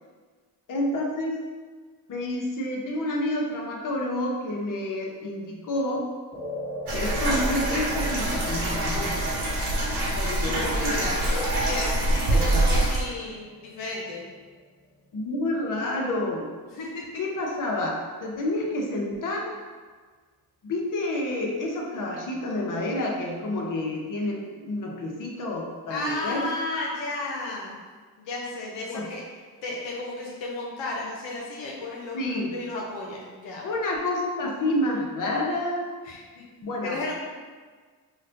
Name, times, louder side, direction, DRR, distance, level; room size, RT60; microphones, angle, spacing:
voice 1, 0.7-1.4 2.1-6.0 6.9-9.4 10.1-11.4 12.3-12.6 15.1-16.5 17.2-19.5 20.6-26.9 28.9-29.1 32.1-32.6 33.6-35.9 36.6-37.1, left 1 dB, 45° left, -1 dB, 0.8 m, -29 dB
sound 1, 6.3-14.8, equal, ahead, 1.4 m, -40 dB
sound 2, 6.9-13.0, right 1 dB, 60° right, 1.0 m, -25 dB
voice 2, 10.5-11.2 11.7-14.2 16.7-17.0 25.9-27.8 28.2-29.2 29.6-33.6 36.0-36.5 36.8-37.1, left 2 dB, 80° left, -3 dB, 0.7 m, -33 dB
4.0 x 2.2 x 2.6 m, 1.5 s
supercardioid pair, 50°, 44 cm